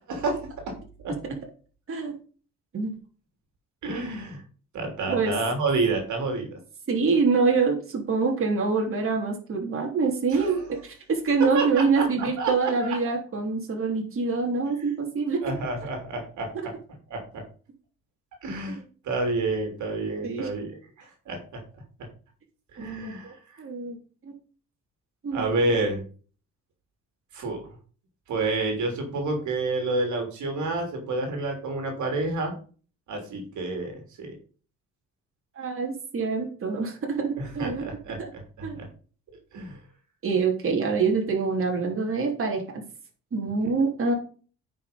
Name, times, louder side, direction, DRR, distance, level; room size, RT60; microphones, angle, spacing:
voice 1, 0.1-0.4 0.7-0.8 1.0-1.1 3.8-4.4 4.7-6.6 10.3-10.6 11.5-12.1 12.4-12.7 15.4-16.7 17.1-17.4 18.4-18.8 19.0-20.7 21.0-21.6 22.7-23.4 25.3-26.0 27.3-27.7 28.3-32.5 33.1-34.3 37.4-38.9 39.5-39.8, right 3 dB, 70° right, 3 dB, 3.2 m, -29 dB
voice 2, 6.9-15.4 18.7-18.8 20.2-20.5 23.0-24.0 24.2-24.3 25.2-25.5 35.5-37.8 38.6-38.9 40.2-42.6 43.3-44.1, right 4 dB, 45° right, 0 dB, 3.3 m, -25 dB
9.5 x 6.0 x 5.2 m, 0.39 s
cardioid pair, 90°, 30 cm